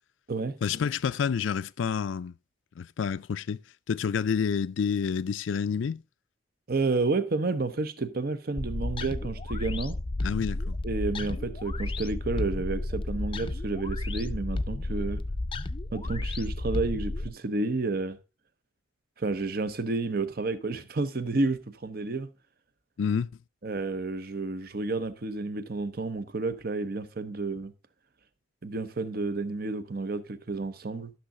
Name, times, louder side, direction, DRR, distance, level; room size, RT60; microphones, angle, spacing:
voice 1, 0.6-2.3 2.8-3.6 3.9-6.0 10.2-10.8 23.0-23.3, left 6 dB, 90° left, 0.4 m, -28 dB
voice 2, 6.7-10.0 10.8-15.2 15.9-18.2 19.2-22.3 23.6-27.7 28.6-31.1, right 3 dB, 50° right, 0.8 m, -30 dB
sound 1, 8.6-17.3, left 2 dB, 25° left, 0.4 m, -32 dB
13.0 x 6.3 x 3.7 m
head